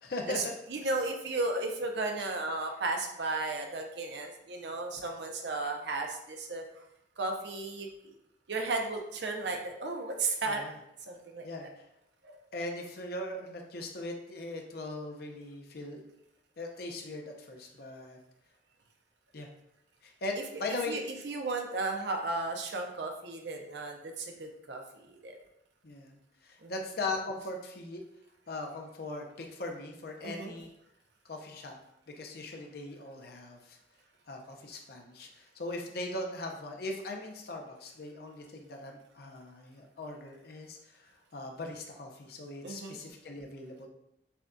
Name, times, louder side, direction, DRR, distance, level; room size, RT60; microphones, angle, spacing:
voice 1, 0.0-0.5 2.2-2.3 10.5-10.7 11.4-11.7 12.5-16.0 16.6-18.2 19.3-19.5 20.0-21.0 25.8-28.0 28.5-30.7 31.2-31.7 32.2-33.8 34.3-43.9, left 2 dB, 60° left, 2 dB, 0.7 m, -39 dB
voice 2, 0.7-6.8 7.2-8.2 8.5-10.6 11.1-11.4 12.2-12.4 20.7-24.8 25.2-25.4 26.6-26.7 30.2-30.5 42.6-43.0, right 3 dB, 75° right, 3 dB, 0.7 m, -34 dB
6.9 x 2.3 x 2.6 m, 0.81 s
head